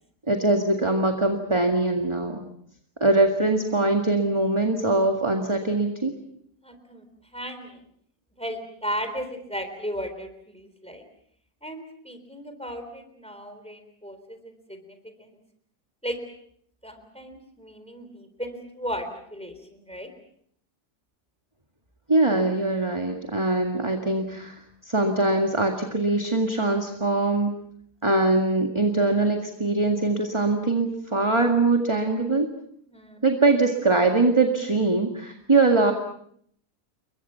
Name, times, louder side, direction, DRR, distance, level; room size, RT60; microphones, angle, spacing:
voice 1, 0.3-2.5 3.0-6.2 22.1-27.6 28.0-32.5 33.2-35.9, right 2 dB, 20° right, 4 dB, 1.9 m, -22 dB
voice 2, 6.6-7.1 7.3-7.7 8.4-11.0 11.6-15.4 16.0-16.2 16.8-20.1 32.9-33.2, equal, 5° left, 7 dB, 3.7 m, -36 dB
29.5 x 23.0 x 5.8 m, 0.65 s
omnidirectional pair, 1.6 m